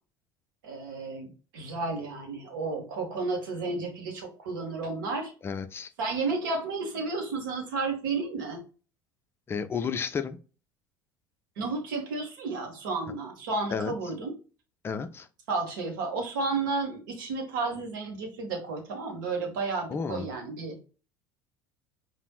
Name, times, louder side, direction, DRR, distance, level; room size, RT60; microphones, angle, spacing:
voice 1, 0.6-5.3 6.0-8.6 11.6-14.3 15.5-20.8, right 3 dB, 65° right, 1.2 m, -32 dB
voice 2, 5.4-5.9 9.5-10.4 13.7-13.9 14.8-15.3 19.9-20.3, left 6 dB, 20° left, 0.4 m, -32 dB
5.2 x 2.6 x 2.3 m
figure-of-eight pair, 65°, 12 cm